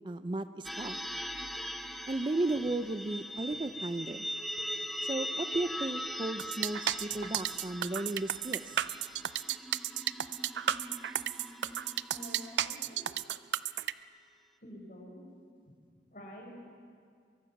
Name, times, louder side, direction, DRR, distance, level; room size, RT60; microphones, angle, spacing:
voice 1, 0.0-1.0 2.1-4.3 5.0-8.8, right 2 dB, 25° right, 11 dB, 0.5 m, -35 dB
sound 1, 0.6-13.2, equal, ahead, 0.8 m, -41 dB
sound 2, 1.6-1.7 2.5-2.7 3.3-3.7 4.3-4.7 5.4-5.7 6.3-6.6, right 2 dB, 55° right, 3.1 m, -52 dB
sound 3, 6.4-13.9, right 10 dB, 85° right, 0.5 m, -33 dB
voice 2, 12.1-13.1 14.6-15.3 16.1-16.7, equal, 50° left, 0 dB, 5.4 m, -48 dB
23.5 x 23.0 x 5.9 m, 2.1 s
head